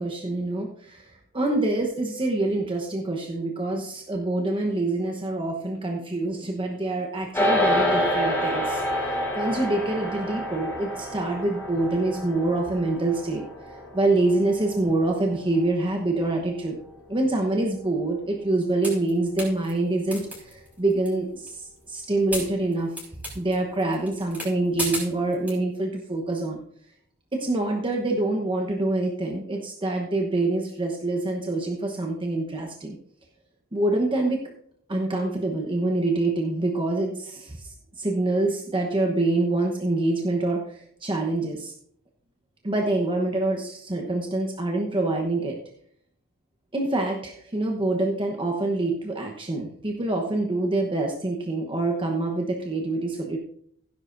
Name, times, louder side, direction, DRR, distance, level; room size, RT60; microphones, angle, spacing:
voice 1, 0.0-16.8 17.1-23.1 23.3-26.6 27.3-33.0 33.7-34.4 34.9-41.7 42.6-45.6 46.7-53.4, right 2 dB, 20° right, 1 dB, 1.0 m, -26 dB
sound 1, 7.3-16.9, equal, 10° left, 4.8 m, -28 dB
sound 2, 18.8-19.1 19.4-19.7 20.1-21.1 21.5-21.6 22.3-23.5 23.8-24.5 24.8-25.5, right 1 dB, 5° right, 5.1 m, -32 dB
16.5 x 10.5 x 2.6 m, 0.67 s
head